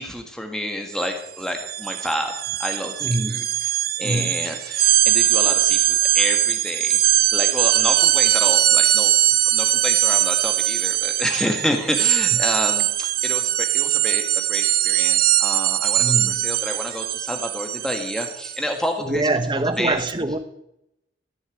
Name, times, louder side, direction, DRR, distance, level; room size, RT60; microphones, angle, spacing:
voice 1, 0.0-3.4 4.0-7.0 7.3-9.1 9.4-16.1 16.4-20.0, equal, 5° left, 1.6 m, -29 dB
sound 1, 0.9-1.1 1.4-18.6, right 13 dB, 50° right, 0.6 m, -21 dB
voice 2, 3.0-3.5 4.0-4.5 12.3-12.4 16.0-16.5 19.0-20.4, right 2 dB, 25° right, 0.9 m, -24 dB
14.5 x 7.0 x 9.2 m
head